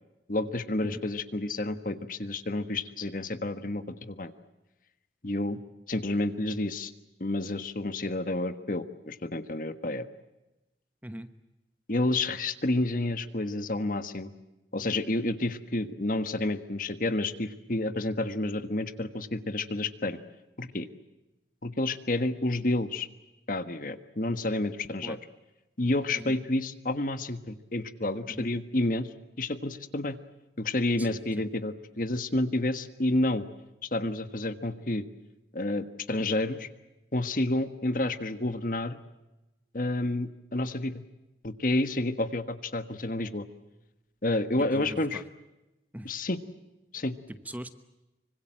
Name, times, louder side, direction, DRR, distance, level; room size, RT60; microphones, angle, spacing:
voice 1, 0.3-4.3 5.2-5.6 5.9-6.9 7.2-10.0 11.9-14.3 14.7-20.2 20.6-20.9 21.6-23.1 23.5-25.2 25.8-29.1 29.4-30.2 30.6-33.4 33.8-35.0 35.5-36.7 37.1-39.0 39.7-41.0 41.4-43.5 44.2-45.2 46.0-46.4 46.9-47.1, left 2 dB, 50° left, 10 dB, 1.5 m, -30 dB
voice 2, 31.0-31.5 44.6-45.2 45.9-46.2 47.3-47.7, right 1 dB, 10° right, 10 dB, 1.0 m, -41 dB
25.5 x 25.0 x 7.6 m, 0.98 s
head